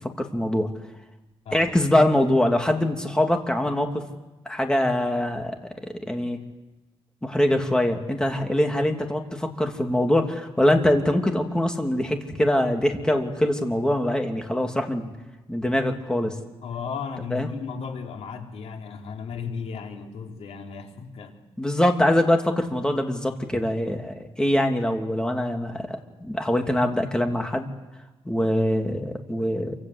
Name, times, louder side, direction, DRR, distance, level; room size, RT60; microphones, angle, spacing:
voice 1, 0.2-0.7 1.5-4.0 4.4-6.4 7.2-15.1 15.5-16.3 17.3-17.5 21.6-27.7 28.2-29.7, left 1 dB, 5° left, 3 dB, 2.9 m, -23 dB
voice 2, 16.6-21.4, left 6 dB, 75° left, 2 dB, 4.0 m, -35 dB
28.0 x 25.5 x 8.2 m, 1.1 s
cardioid pair, 125°, 11 cm